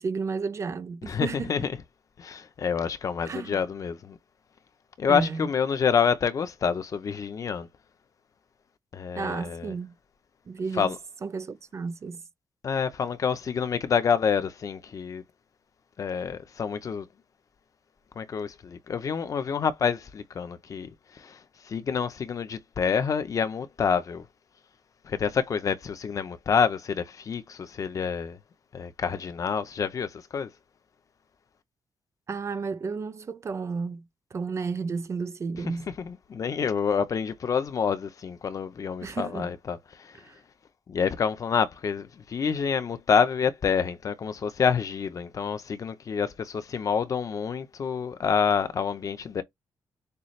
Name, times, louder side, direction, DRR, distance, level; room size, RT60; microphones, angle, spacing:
voice 1, 0.0-1.6 3.2-3.6 5.1-5.5 9.2-9.9 10.5-10.9 11.2-12.2 32.3-34.0 34.3-35.9 39.0-39.5 40.2-40.4, right 5 dB, 35° right, 0.6 m, -32 dB
voice 2, 1.1-1.7 2.2-4.2 5.0-7.7 8.9-9.7 10.7-11.0 12.6-15.2 16.0-17.1 18.2-24.3 25.0-28.4 28.7-30.5 36.0-40.2 40.9-49.4, left 6 dB, 45° left, 0.7 m, -28 dB
6.7 x 2.4 x 3.2 m
wide cardioid pair, 150°, 8 cm